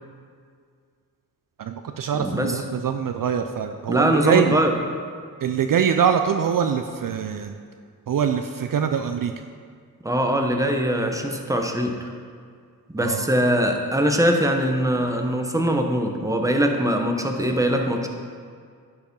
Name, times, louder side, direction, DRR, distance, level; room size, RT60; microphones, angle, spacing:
voice 1, 1.6-4.6 5.4-7.5 8.1-9.3 13.0-13.3, right 7 dB, 55° right, 7 dB, 0.5 m, -23 dB
voice 2, 2.2-2.6 3.9-4.7 10.0-12.1 12.9-18.1, equal, 10° right, 3 dB, 1.0 m, -22 dB
10.5 x 4.8 x 5.4 m, 2.1 s
cardioid pair, 70°, 40 cm